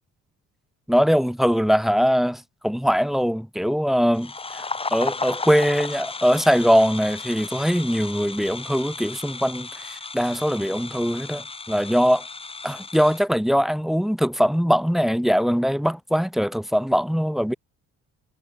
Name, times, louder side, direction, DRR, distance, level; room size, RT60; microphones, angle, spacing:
voice 1, 0.9-4.6 4.9-12.3 12.6-17.5, equal, ahead, 1.4 m, -21 dB
sound 1, 4.1-13.2, left 4 dB, 20° left, 1.0 m, -34 dB
cardioid pair, 90°, 30 cm